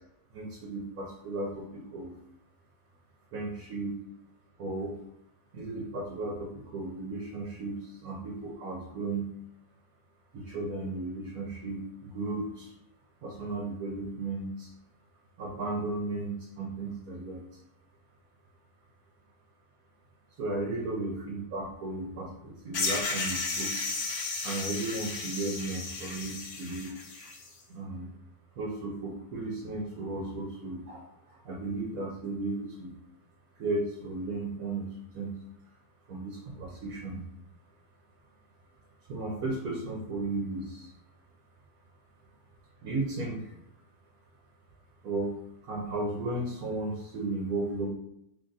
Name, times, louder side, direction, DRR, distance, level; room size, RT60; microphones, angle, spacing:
voice 1, 0.3-2.1 3.3-3.9 4.6-4.9 5.5-9.3 10.3-12.7 13.2-14.7 15.4-17.4 20.4-23.7 24.4-26.9 27.7-28.1 28.6-32.9 33.6-35.3 36.1-37.2 39.1-40.9 42.8-43.4 45.0-45.3 45.6-47.9, right 2 dB, 70° right, -2 dB, 1.1 m, -35 dB
sound 1, 22.7-27.5, left 3 dB, 75° left, 1.3 m, -34 dB
3.3 x 2.5 x 3.8 m, 0.78 s
omnidirectional pair, 1.6 m